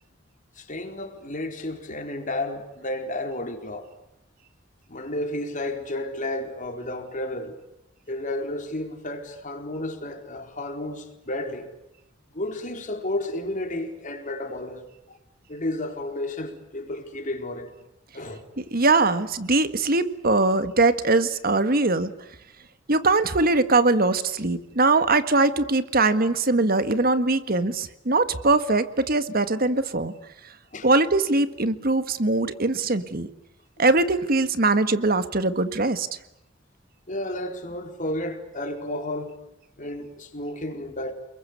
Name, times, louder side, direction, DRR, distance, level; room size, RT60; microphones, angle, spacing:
voice 1, 0.6-3.9 4.9-7.6 8.1-11.7 12.3-15.2 15.5-17.7 18.1-18.4 30.7-30.9 37.1-39.4 39.8-41.1, left 1 dB, 45° left, 4.3 m, -32 dB
voice 2, 18.7-22.1 22.9-30.1 30.8-33.3 33.8-36.1, right 3 dB, 50° right, 1.7 m, -21 dB
29.5 x 22.5 x 8.3 m
head